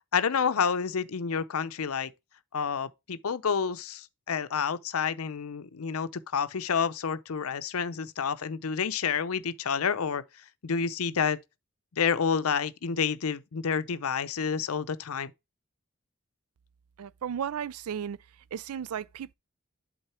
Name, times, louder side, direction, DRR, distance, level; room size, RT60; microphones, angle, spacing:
voice 1, 0.1-2.1 2.5-10.2 10.6-11.4 11.9-15.3, left 6 dB, 75° left, 0.6 m, -29 dB
voice 2, 17.0-18.2 18.5-19.3, right 8 dB, 80° right, 0.4 m, -34 dB
8.1 x 3.7 x 4.3 m
head